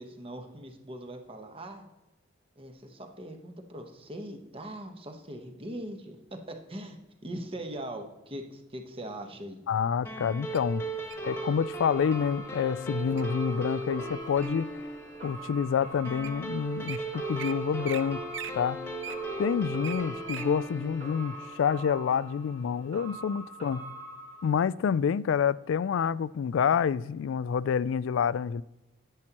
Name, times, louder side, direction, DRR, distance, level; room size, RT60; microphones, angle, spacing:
voice 1, 0.0-1.9 2.6-7.0 7.2-9.6, right 1 dB, 30° right, 1.1 m, -41 dB
voice 2, 9.7-10.8 11.2-14.7 15.2-18.2 18.5-18.8 19.4-23.9 24.4-28.6, left 7 dB, 90° left, 0.3 m, -28 dB
sound 1, 10.0-22.8, right 2 dB, 15° left, 1.4 m, -38 dB
Wild animals, 10.5-11.3 12.0-12.3 12.8-13.2 13.7-14.7 15.3-15.4 16.0-16.1 16.2-16.4 16.7-17.0 17.4-17.5 17.8-18.0 18.3-20.5 20.9-21.0, right 8 dB, 70° right, 0.6 m, -40 dB
sound 2, 11.2-24.5, right 1 dB, 55° right, 3.1 m, -45 dB
10.5 x 9.9 x 3.0 m
head